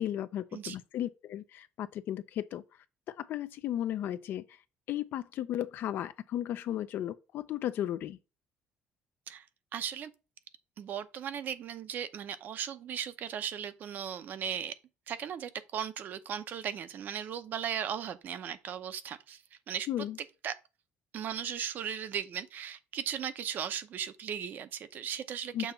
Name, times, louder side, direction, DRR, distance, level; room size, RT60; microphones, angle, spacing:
voice 1, 0.0-2.6 3.1-4.6 4.9-8.2 19.9-20.2 25.5-25.7, left 11 dB, 60° left, 0.4 m, -35 dB
voice 2, 9.7-10.1 10.8-14.7 15.1-19.9 20.4-20.5 21.1-25.7, right 8 dB, 50° right, 0.7 m, -37 dB
6.9 x 2.9 x 5.6 m
cardioid pair, 145°, 4 cm